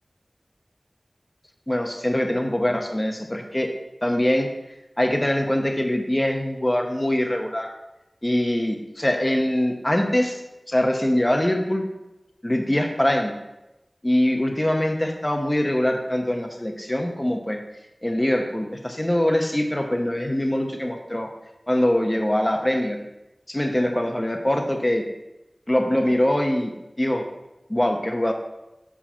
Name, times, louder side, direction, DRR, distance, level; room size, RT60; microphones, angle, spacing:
voice 1, 1.7-3.7 4.0-4.5 5.0-7.7 8.2-10.4 10.7-11.8 12.4-13.3 14.0-17.6 18.0-21.3 21.7-23.0 23.5-25.0 25.7-26.7 27.0-27.2 27.7-28.3, left 1 dB, 25° left, 4 dB, 0.9 m, -23 dB
5.8 x 4.6 x 5.8 m, 0.95 s
wide cardioid pair, 50°, 0 cm